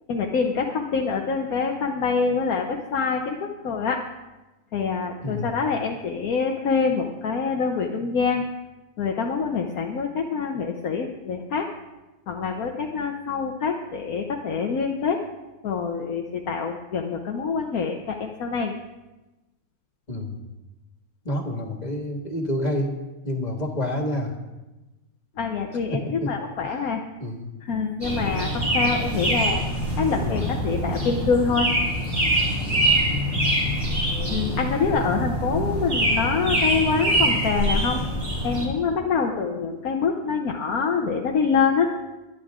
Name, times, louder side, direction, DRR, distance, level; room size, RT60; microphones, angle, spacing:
voice 1, 0.1-4.0 4.7-8.4 9.0-11.7 12.3-15.2 15.6-18.7 25.4-27.0 27.6-29.6 30.0-31.7 34.3-38.0 38.4-41.9, left 5 dB, 80° left, 2 dB, 1.4 m, -25 dB
voice 2, 5.2-5.6 20.1-20.4 21.3-23.0 23.2-24.4 25.9-26.3 26.6-26.7 27.2-27.5 30.1-30.5 32.7-33.1, left 1 dB, 30° left, 2 dB, 1.9 m, -29 dB
sound 1, 28.0-38.7, right 1 dB, 40° right, 3.6 m, -24 dB
23.0 x 10.0 x 3.7 m, 1.1 s
omnidirectional pair, 1.5 m